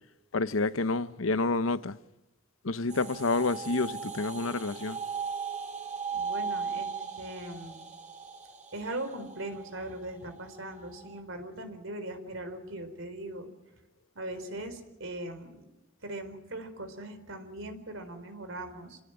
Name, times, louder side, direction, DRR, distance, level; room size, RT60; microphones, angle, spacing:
voice 1, 0.3-2.0 2.6-5.0, left 3 dB, 75° left, 0.9 m, -29 dB
sound 1, 2.9-11.2, right 5 dB, 40° right, 6.0 m, -38 dB
voice 2, 6.1-7.8 8.7-13.5 14.1-15.6 16.0-19.0, right 1 dB, 70° right, 4.4 m, -40 dB
28.5 x 17.5 x 9.0 m
head